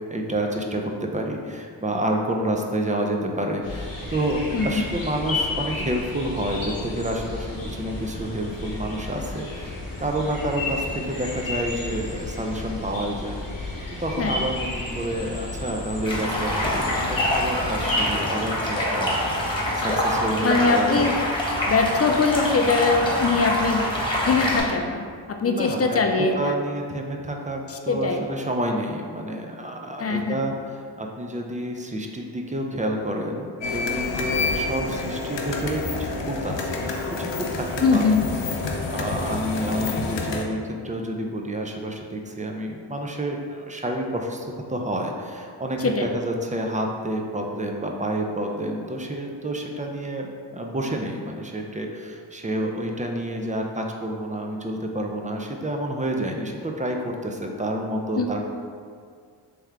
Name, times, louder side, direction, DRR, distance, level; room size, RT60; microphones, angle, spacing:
voice 1, 0.1-13.4 14.0-19.2 19.7-21.0 25.4-36.8 37.2-58.4, right 1 dB, 20° right, 2 dB, 0.5 m, -29 dB
sound 1, 3.6-18.2, left 2 dB, 50° left, 1.0 m, -32 dB
voice 2, 4.5-4.8 14.2-14.4 20.4-21.2 21.7-23.8 24.2-26.6 27.9-28.2 30.0-30.5 37.8-38.2 45.8-46.1 58.1-58.3, left 4 dB, 35° left, 4 dB, 0.4 m, -22 dB
Stream, 16.0-24.6, left 1 dB, 10° left, 1.3 m, -25 dB
sound 2, 33.6-40.4, left 3 dB, 80° left, 0.6 m, -28 dB
3.4 x 3.2 x 3.5 m, 2.1 s
cardioid pair, 50°, 43 cm